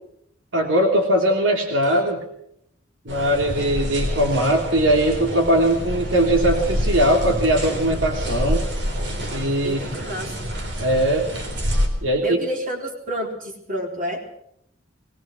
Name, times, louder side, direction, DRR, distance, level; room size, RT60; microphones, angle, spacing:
voice 1, 0.5-2.2 3.0-8.6 9.3-9.8 10.8-11.3 12.0-12.4, right 1 dB, 85° right, 2 dB, 3.0 m, -20 dB
sound 1, 3.1-11.9, equal, 65° right, 4.1 m, -27 dB
voice 2, 9.6-10.4 12.2-14.2, equal, 45° right, 0 dB, 4.2 m, -29 dB
22.0 x 19.0 x 6.2 m, 0.74 s
head